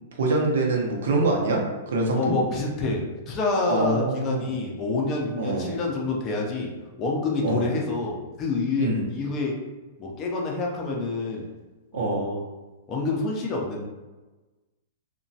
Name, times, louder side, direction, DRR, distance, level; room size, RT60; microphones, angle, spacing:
voice 1, 0.2-2.3 3.7-4.5 5.4-5.7 7.4-7.7 8.8-9.1 11.9-12.3, right 2 dB, 70° right, -1 dB, 0.6 m, -24 dB
voice 2, 2.1-6.7 7.0-9.6 10.0-11.5 11.9-12.4 12.9-13.8, left 3 dB, 25° left, -1 dB, 0.4 m, -27 dB
2.9 x 2.1 x 2.7 m, 1.2 s
supercardioid pair, 165°, 0 cm